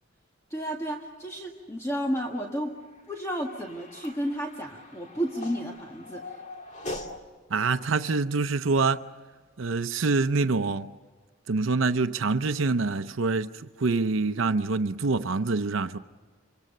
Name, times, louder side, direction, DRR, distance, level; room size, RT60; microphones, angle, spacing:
voice 1, 0.5-2.8 3.1-6.4, equal, 15° left, 1.7 m, -32 dB
sound 1, 2.2-7.2, left 2 dB, 35° left, 2.1 m, -42 dB
voice 2, 7.5-9.1 9.6-10.9 11.5-16.0, right 3 dB, 85° right, 0.7 m, -26 dB
28.0 x 24.5 x 6.7 m
head